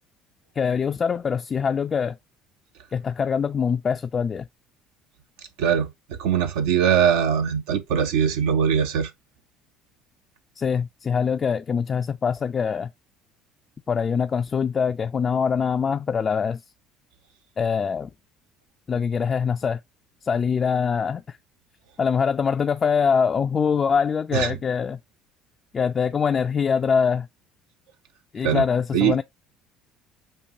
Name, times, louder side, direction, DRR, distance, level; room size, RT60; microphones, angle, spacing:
voice 1, 0.6-2.2 2.9-4.5 10.6-12.9 13.9-16.6 17.6-18.1 18.9-19.8 20.2-21.4 22.0-25.0 25.7-27.3 28.3-29.2, left 6 dB, 35° left, 0.3 m, -23 dB
voice 2, 5.6-5.9 6.2-9.1 24.3-24.5 28.4-28.6 28.9-29.2, right 8 dB, 65° right, 0.5 m, -21 dB
6.5 x 2.6 x 2.8 m
figure-of-eight pair, 60°, 0 cm